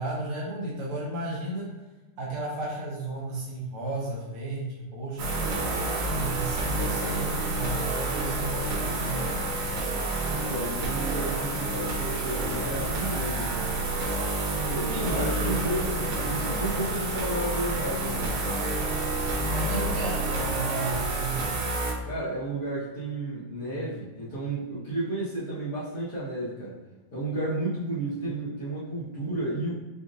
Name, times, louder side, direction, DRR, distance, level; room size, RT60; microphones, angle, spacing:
voice 1, 0.0-1.7 2.2-5.4 6.1-9.2 14.9-15.5 19.5-21.5, right 2 dB, 60° right, -5 dB, 1.5 m, -33 dB
sound 1, 5.2-21.9, right 2 dB, 85° right, 3.1 m, -29 dB
voice 2, 10.2-13.6 14.7-18.4 22.0-26.8 27.1-29.7, right 2 dB, 75° left, -11 dB, 0.8 m, -32 dB
7.6 x 2.6 x 2.6 m, 1.1 s
omnidirectional pair, 3.9 m